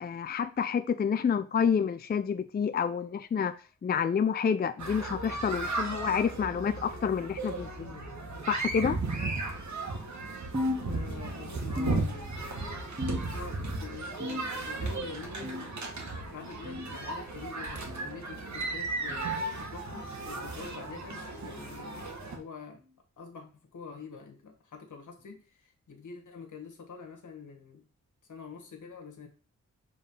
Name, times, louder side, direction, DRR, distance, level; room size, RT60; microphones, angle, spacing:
voice 1, 0.0-3.6 3.8-8.0 8.5-9.0, left 7 dB, 30° left, 0.4 m, -29 dB
sound 1, 4.8-22.4, right 3 dB, 65° right, 1.5 m, -35 dB
sound 2, 10.5-11.4 11.8-12.6 13.0-13.6 14.2-14.8 15.4-15.8 16.6-16.9 17.9-18.1 19.1-19.3 20.3-20.5 21.5-21.7 22.7-22.9 24.0-24.1 25.2-25.3, left 2 dB, 20° right, 1.2 m, -37 dB
voice 2, 10.8-13.0 13.2-15.7 16.3-22.8 23.2-27.8 28.3-29.3, left 5 dB, 80° left, 1.6 m, -46 dB
5.4 x 3.8 x 5.5 m
cardioid pair, 70°, 30 cm